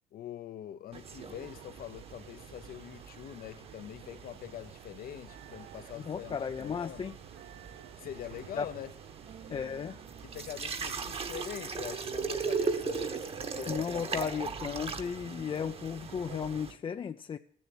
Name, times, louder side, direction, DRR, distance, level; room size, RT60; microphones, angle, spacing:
voice 1, 0.1-7.1 8.0-8.9 10.2-14.5, left 11 dB, 60° left, 0.7 m, -44 dB
sound 1, 0.9-16.7, right 5 dB, 35° right, 1.2 m, -39 dB
sound 2, 1.0-16.8, right 12 dB, 80° right, 0.7 m, -53 dB
sound 3, 5.3-10.9, right 9 dB, 60° right, 1.0 m, -56 dB
voice 2, 6.0-7.1 8.5-8.7 9.5-10.0 13.7-17.4, left 7 dB, 30° left, 0.5 m, -35 dB
14.5 x 7.2 x 9.7 m
cardioid pair, 110°, 17 cm